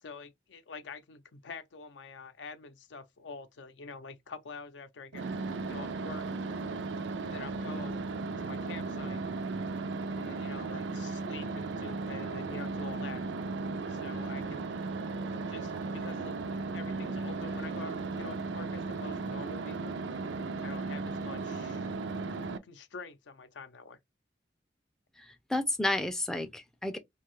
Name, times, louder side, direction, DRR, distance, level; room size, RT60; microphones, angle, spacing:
voice 1, 0.0-5.3 5.7-6.3 7.2-8.0 8.4-9.2 10.2-13.2 13.9-14.7 15.5-19.9 20.6-21.9 22.6-24.0, left 4 dB, 80° left, 0.5 m, -46 dB
sound 1, 5.1-22.6, right 3 dB, 80° right, 0.4 m, -36 dB
voice 2, 25.2-27.0, left 1 dB, 5° left, 0.3 m, -31 dB
2.7 x 2.3 x 3.1 m
head